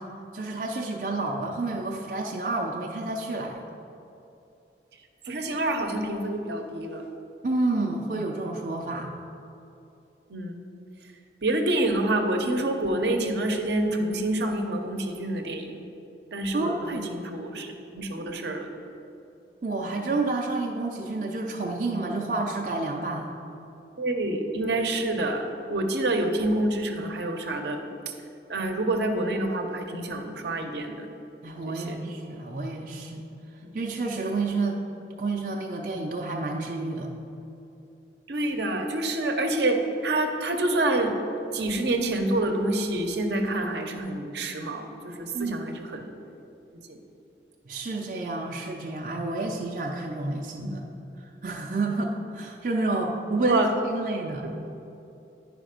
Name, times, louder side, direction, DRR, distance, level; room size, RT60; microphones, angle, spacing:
voice 1, 0.3-3.6 7.4-9.1 16.5-17.1 19.6-23.3 31.4-33.2 33.7-34.8 35.2-37.1 45.3-45.7 47.7-50.8 51.4-54.5, right 2 dB, 45° right, 0 dB, 0.5 m, -30 dB
voice 2, 5.2-7.0 10.3-10.5 11.4-15.7 16.3-18.7 24.0-25.4 25.7-27.8 28.5-31.1 31.8-32.0 38.3-41.2 41.5-46.1 46.9-47.0 50.6-50.7 53.4-53.7 54.5-54.6, right 1 dB, 75° right, 4 dB, 0.8 m, -27 dB
9.9 x 5.0 x 5.1 m, 2.8 s
head